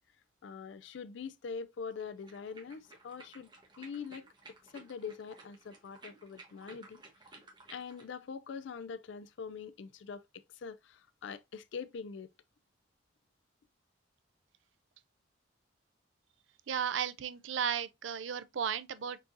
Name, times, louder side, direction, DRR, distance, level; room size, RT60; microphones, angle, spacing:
voice 1, 0.4-3.5 3.8-7.0 7.7-12.3, left 5 dB, 70° left, 0.4 m, -44 dB
sound 1, 1.9-8.1, right 3 dB, 25° right, 1.3 m, -56 dB
voice 2, 16.7-19.2, right 8 dB, 75° right, 0.5 m, -34 dB
4.6 x 3.8 x 2.7 m
head